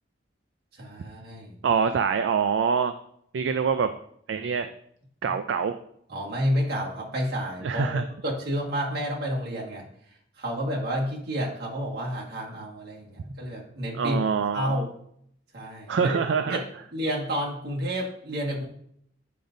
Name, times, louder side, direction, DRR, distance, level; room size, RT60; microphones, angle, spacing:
voice 1, 0.8-1.6 6.1-7.9 8.2-9.8 10.4-14.2 14.5-14.9 15.5-16.2 16.5-16.6 16.9-18.6, equal, 55° right, -3 dB, 1.6 m, -30 dB
voice 2, 1.6-2.9 3.3-3.9 4.3-4.7 5.2-5.8 7.6-8.0 13.9-14.8 15.9-16.6, right 6 dB, 75° right, 8 dB, 0.3 m, -25 dB
8.6 x 5.0 x 2.6 m, 0.69 s
head